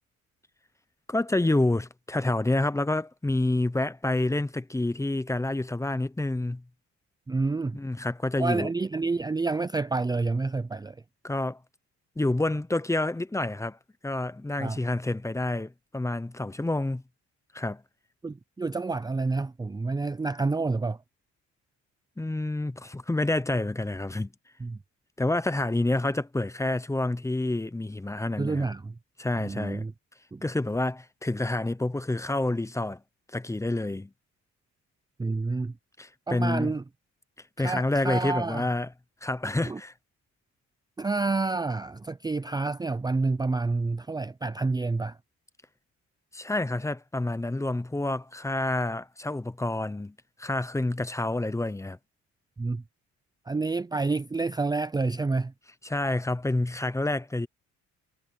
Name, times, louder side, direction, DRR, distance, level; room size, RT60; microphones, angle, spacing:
voice 1, 1.1-6.6 7.7-8.7 11.2-11.6 12.2-13.8 14.0-17.0 17.5-17.8 22.2-24.3 25.2-28.7 29.2-29.9 30.4-33.0 33.3-34.1 36.0-36.7 37.6-38.9 39.2-39.9 46.3-52.0 55.8-57.5, left 2 dB, 10° left, 0.9 m, -28 dB
voice 2, 7.3-7.8 8.4-11.0 14.6-14.8 18.2-21.0 24.6-24.8 28.4-28.9 29.4-29.9 30.3-30.4 35.2-35.7 36.3-36.8 37.6-38.7 39.6-39.8 41.0-45.2 52.6-52.8 53.5-55.5, right 3 dB, 15° right, 0.5 m, -28 dB
cardioid pair, 95°, 29 cm